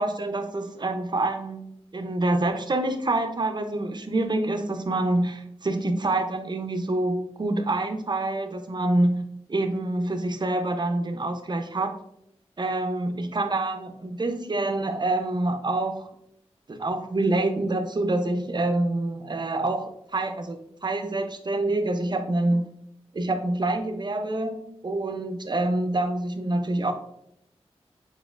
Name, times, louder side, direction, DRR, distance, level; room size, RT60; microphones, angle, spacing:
voice 1, 0.0-9.2 9.5-11.9 12.6-16.1 16.7-22.7 23.1-26.9, right 2 dB, 40° right, 7 dB, 0.5 m, -26 dB
4.3 x 3.6 x 2.3 m, 0.74 s
cardioid pair, 55°, 11 cm